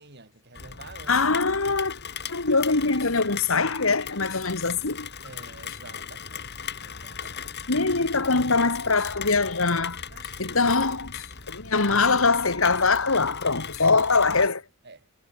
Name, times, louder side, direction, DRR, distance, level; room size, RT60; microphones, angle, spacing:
voice 1, 0.0-1.4 5.2-7.7 10.1-10.7 13.9-14.6 14.8-15.1, right 3 dB, 55° right, 6.7 m, -49 dB
Rain, 0.5-14.5, left 7 dB, 55° left, 6.6 m, -38 dB
voice 2, 1.1-2.0 2.3-5.1 7.7-10.0 10.4-14.6, left 4 dB, 75° left, 2.1 m, -23 dB
head